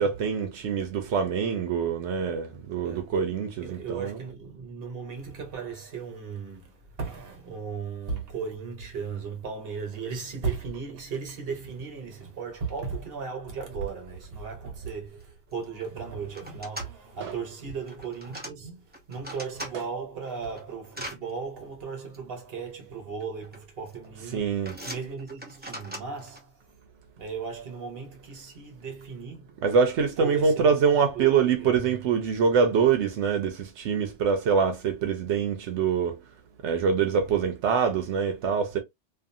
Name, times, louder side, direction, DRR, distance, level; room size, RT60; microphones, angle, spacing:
voice 1, 0.0-4.2 17.2-17.3 24.3-24.8 29.6-36.2 36.6-38.8, right 6 dB, 90° right, 1.0 m, -24 dB
voice 2, 3.6-24.6 24.8-26.5 27.2-29.6 30.2-30.7 31.1-32.0, right 5 dB, 60° right, 1.2 m, -36 dB
sound 1, 15.2-15.3 15.5-15.9 16.3-16.9 17.8-18.5 18.9-19.7 20.2-21.2 22.1-22.2 23.2-23.6 23.9-24.2 24.7-26.4, equal, 10° right, 0.7 m, -40 dB
2.6 x 2.5 x 2.6 m
omnidirectional pair, 1.2 m